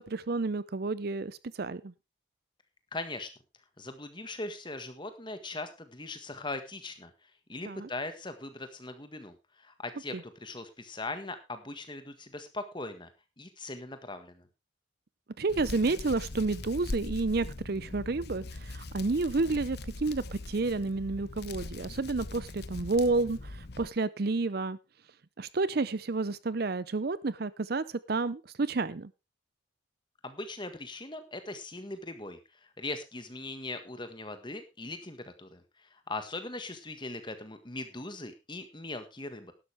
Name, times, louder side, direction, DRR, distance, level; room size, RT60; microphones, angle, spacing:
voice 1, 0.0-1.9 7.6-7.9 10.1-10.2 15.4-24.8 25.4-29.1, right 3 dB, 50° right, 0.6 m, -30 dB
voice 2, 2.9-3.3 3.8-7.1 7.5-13.1 13.4-14.5 30.2-32.4 32.8-39.5, left 2 dB, 25° left, 1.6 m, -40 dB
Hands, 15.5-23.9, left 2 dB, 55° left, 1.0 m, -41 dB
12.0 x 12.0 x 3.5 m
head